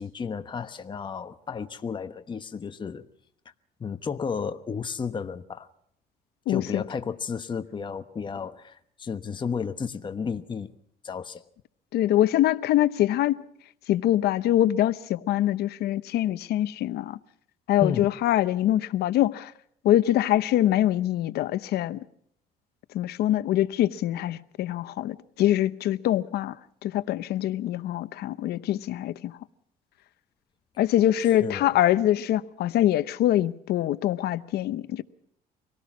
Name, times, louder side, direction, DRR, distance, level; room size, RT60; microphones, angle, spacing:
voice 1, 0.0-3.0 3.8-5.7 6.5-10.7 11.0-11.4 17.8-18.1 31.4-31.8, left 6 dB, 30° left, 1.1 m, -33 dB
voice 2, 6.5-6.8 11.9-13.4 13.9-17.2 17.7-19.5 19.8-22.0 22.9-26.6 26.8-29.3 30.8-35.0, left 13 dB, 70° left, 0.8 m, -24 dB
25.0 x 18.0 x 6.1 m
cardioid pair, 110°, 17 cm